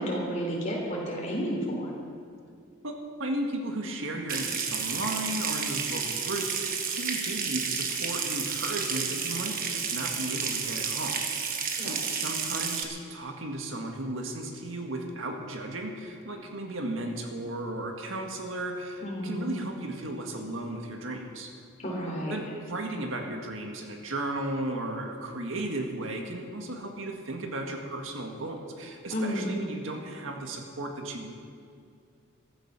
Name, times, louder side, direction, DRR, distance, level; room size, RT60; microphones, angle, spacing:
voice 1, 0.0-1.9 11.8-12.0 19.0-19.5 21.8-22.4 29.1-29.5, equal, 35° left, -2 dB, 3.9 m, -31 dB
voice 2, 3.2-21.5 22.3-31.3, right 1 dB, 70° right, 2 dB, 1.8 m, -35 dB
Water tap faucet / Sink (filling or washing) / Trickle dribble, 4.3-12.8, right 6 dB, 40° right, 1.4 m, -31 dB
15.5 x 13.5 x 6.1 m, 2.3 s
head